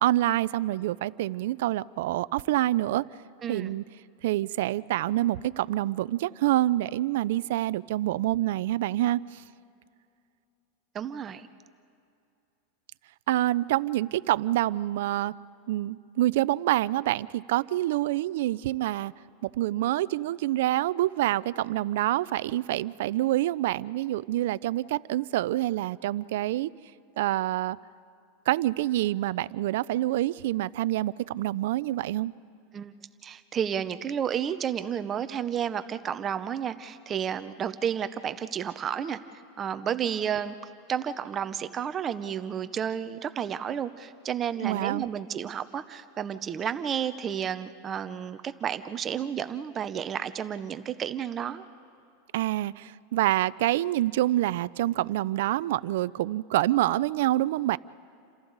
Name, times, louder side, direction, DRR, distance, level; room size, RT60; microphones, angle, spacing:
voice 1, 0.0-3.0 3.5-3.8 4.2-9.4 13.3-15.3 15.7-19.1 19.4-26.7 27.2-27.8 28.5-32.3 44.6-45.1 52.3-57.8, right 15 dB, 70° right, 19 dB, 0.4 m, -26 dB
voice 2, 3.4-3.7 10.9-11.5 32.7-32.9 33.2-39.2 39.6-40.5 40.9-51.6, right 8 dB, 25° right, 12 dB, 0.7 m, -31 dB
29.5 x 26.5 x 4.0 m, 2.6 s
supercardioid pair, 135°, 0 cm